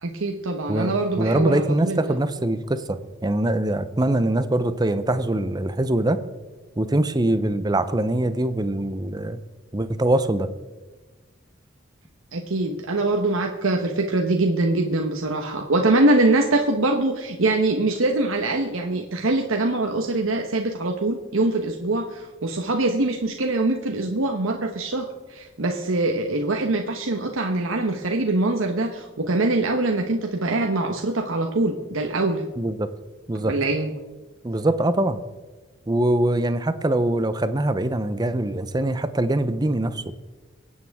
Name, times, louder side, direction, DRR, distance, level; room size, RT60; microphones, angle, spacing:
voice 1, 0.0-2.0 12.3-32.5 33.4-33.9, right 2 dB, 85° right, 3 dB, 1.1 m, -23 dB
voice 2, 0.7-3.0 3.2-6.2 6.8-9.4 9.7-10.5 32.6-32.9 33.3-33.5 34.4-35.2 35.9-40.0, right 1 dB, 20° right, 12 dB, 0.6 m, -23 dB
23.5 x 8.7 x 3.6 m, 1.3 s
head